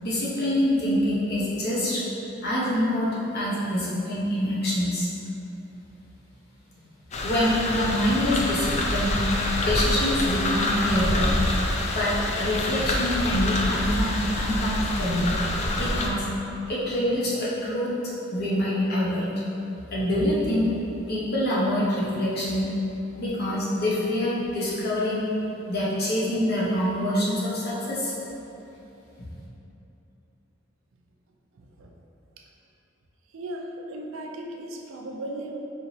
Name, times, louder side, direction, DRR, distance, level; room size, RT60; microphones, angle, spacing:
voice 1, 0.0-2.0 2.4-5.1 7.2-9.3 9.6-11.3 11.9-15.3 15.7-16.2 16.7-17.9 18.3-19.3 19.9-20.7 21.1-22.7 23.1-25.3 25.7-28.1, left 1 dB, 55° left, -7 dB, 1.0 m, -25 dB
sound 1, 7.1-16.1, left 1 dB, 35° left, 0.4 m, -26 dB
voice 2, 31.5-31.9 33.3-35.6, right 1 dB, 85° right, 1 dB, 0.4 m, -36 dB
4.7 x 2.9 x 2.7 m, 3.0 s
head